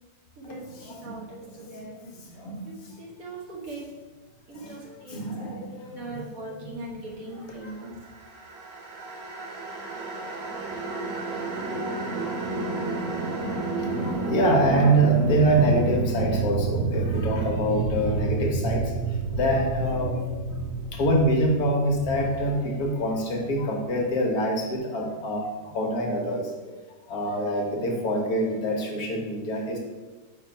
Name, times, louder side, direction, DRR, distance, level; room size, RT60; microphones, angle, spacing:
voice 1, 0.4-2.1 2.6-3.9 4.5-5.2 5.7-7.9, right 2 dB, 55° right, -3 dB, 1.5 m, -40 dB
voice 2, 1.7-2.6 4.5-4.7 5.1-6.6 13.8-29.8, right 1 dB, 65° left, 0 dB, 1.3 m, -26 dB
sound 1, 8.0-23.2, right 3 dB, 85° right, 1.9 m, -30 dB
5.0 x 4.1 x 4.4 m, 1.3 s
omnidirectional pair, 1.9 m